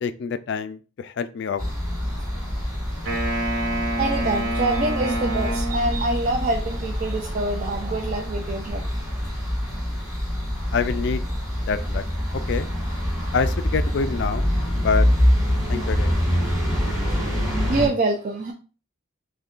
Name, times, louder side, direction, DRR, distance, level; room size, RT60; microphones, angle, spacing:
voice 1, 0.0-1.7 10.7-11.2 11.7-12.0 12.5-12.7 13.3-14.5 14.8-15.1 15.7-16.2, left 5 dB, 55° left, 11 dB, 0.3 m, -26 dB
sound 1, 1.6-17.9, equal, ahead, 1.9 m, -25 dB
Wind instrument woodwind instrument, 3.0-6.5, right 1 dB, 70° right, 1.2 m, -28 dB
voice 2, 3.7-9.3 17.3-18.5, right 2 dB, 40° right, 1 dB, 0.4 m, -26 dB
6.4 x 2.2 x 2.4 m, 0.36 s
head